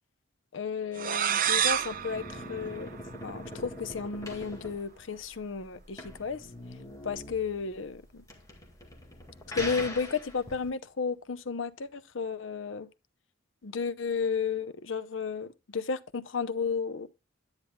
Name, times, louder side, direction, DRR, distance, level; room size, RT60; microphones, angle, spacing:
voice 1, 0.5-2.9 3.2-6.5 7.0-8.2 9.5-12.9 13.6-17.1, left 5 dB, 70° left, 0.7 m, -33 dB
sound 1, 0.9-3.6, right 9 dB, 45° right, 0.6 m, -30 dB
sound 2, 1.4-10.7, left 1 dB, 20° left, 1.9 m, -43 dB
9.8 x 9.7 x 2.3 m
head